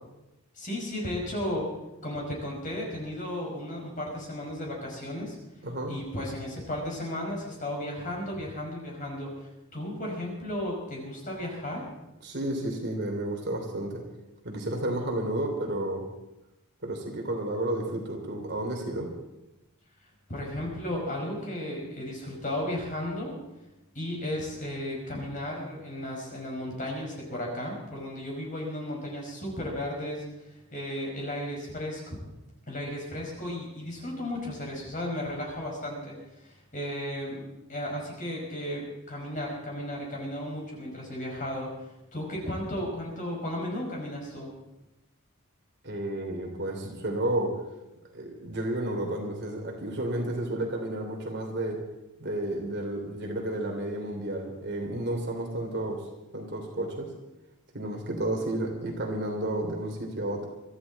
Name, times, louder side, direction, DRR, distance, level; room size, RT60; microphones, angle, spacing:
voice 1, 0.5-1.7 2.0-5.4 5.9-11.8 20.3-23.4 24.0-32.2 32.7-36.2 36.4-37.4 37.7-41.7 42.1-44.5, left 1 dB, 35° left, -1 dB, 5.2 m, -34 dB
voice 2, 12.2-14.0 14.4-16.0 16.8-19.1 45.8-47.6 48.1-51.8 52.2-56.0 56.3-57.1 57.7-60.5, right 1 dB, 50° right, 1 dB, 3.2 m, -31 dB
23.5 x 14.0 x 4.2 m, 0.97 s
head